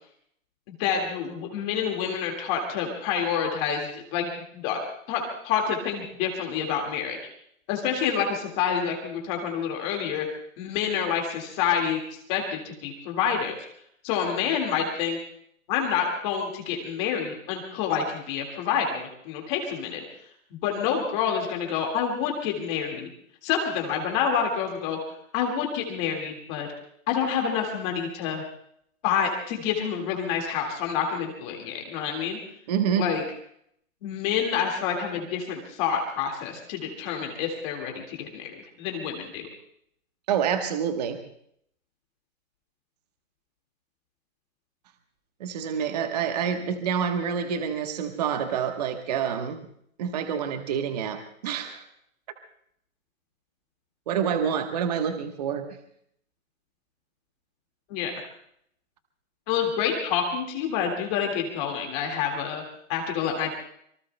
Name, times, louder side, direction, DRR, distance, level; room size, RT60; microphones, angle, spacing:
voice 1, 0.7-4.8 5.1-7.2 7.7-10.3 10.6-13.7 14.0-15.2 15.7-20.0 20.5-23.1 23.4-25.0 25.3-26.7 27.1-28.4 29.0-32.4 33.0-33.2 34.0-39.5 57.9-58.2 59.5-62.6 62.9-63.5, left 7 dB, 20° left, 1 dB, 1.9 m, -28 dB
voice 2, 32.7-33.1 40.3-41.2 45.4-49.6 50.0-51.8 54.1-55.7, right 7 dB, 30° right, 6 dB, 1.1 m, -27 dB
26.5 x 23.5 x 2.2 m, 0.70 s
hypercardioid pair, 160°, 43 cm